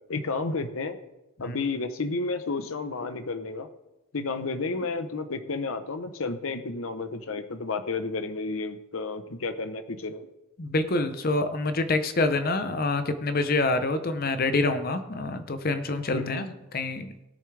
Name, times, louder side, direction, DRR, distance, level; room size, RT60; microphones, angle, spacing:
voice 1, 0.1-1.0 1.4-3.7 4.1-10.3 16.1-16.4, left 3 dB, 75° left, 9 dB, 0.8 m, -31 dB
voice 2, 10.6-17.3, left 2 dB, 45° left, 10 dB, 0.7 m, -27 dB
19.0 x 6.9 x 3.3 m, 0.97 s
head